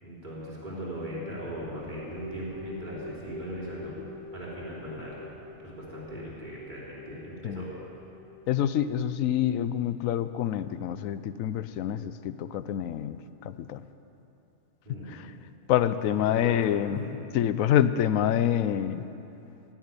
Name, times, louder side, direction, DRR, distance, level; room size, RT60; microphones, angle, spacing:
voice 1, 0.0-3.9 4.3-5.2 5.6-7.7 14.8-15.2 16.0-16.6 17.0-17.1, equal, 35° right, -7 dB, 3.5 m, -39 dB
sound 1, 1.5-8.9, left 2 dB, 45° left, 4.1 m, -45 dB
voice 2, 8.5-13.8 15.1-15.3 15.7-17.0 17.3-19.0, left 10 dB, 85° left, 13 dB, 1.0 m, -27 dB
16.0 x 7.4 x 9.8 m, 2.8 s
omnidirectional pair, 1.4 m